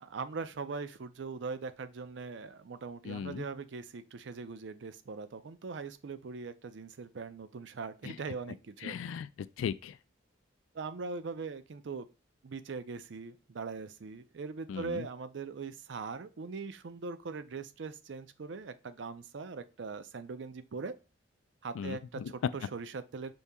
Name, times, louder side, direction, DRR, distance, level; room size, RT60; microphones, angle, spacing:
voice 1, 0.0-9.0 10.7-12.1 12.4-21.0 21.6-23.3, right 4 dB, 65° right, 0.5 m, -41 dB
voice 2, 3.0-3.4 8.0-8.2 8.8-10.0 14.7-15.1 21.7-22.3, left 7 dB, 90° left, 0.3 m, -38 dB
5.3 x 2.7 x 3.5 m
head